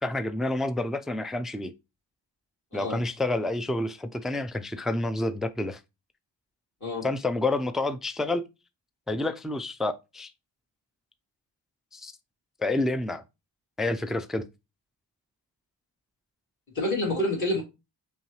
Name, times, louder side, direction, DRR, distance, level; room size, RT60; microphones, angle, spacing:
voice 1, 0.0-1.7 2.7-5.8 7.0-8.4 9.1-10.3 11.9-12.1 12.6-13.2 13.8-14.4, left 2 dB, ahead, 0.3 m, -29 dB
voice 2, 16.7-17.6, left 1 dB, 40° left, 2.4 m, -27 dB
5.6 x 2.3 x 3.1 m
cardioid pair, 85°, 44 cm